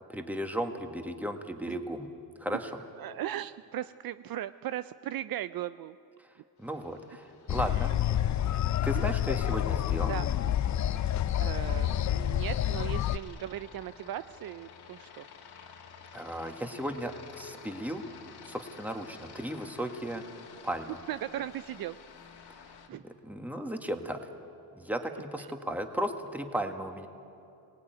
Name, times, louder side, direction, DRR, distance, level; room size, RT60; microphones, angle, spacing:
voice 1, 0.1-2.1 2.4-2.7 6.6-8.3 8.8-10.1 16.1-18.0 18.4-20.2 20.6-21.0 22.5-22.6 22.9-24.2 24.7-27.1, equal, 5° right, 5 dB, 1.7 m, -35 dB
voice 2, 3.0-6.0 7.7-7.8 8.5-8.6 8.9-9.1 10.1-10.3 11.0-11.1 11.4-15.2 21.1-22.0 22.9-23.0 25.4-25.5, right 12 dB, 65° right, 13 dB, 0.5 m, -38 dB
Aircraft, 6.6-22.9, left 6 dB, 80° left, 2.4 m, -52 dB
sound 1, 7.5-13.2, left 11 dB, 50° left, 0.5 m, -28 dB
25.0 x 18.5 x 9.3 m, 2.6 s
cardioid pair, 115°, 39 cm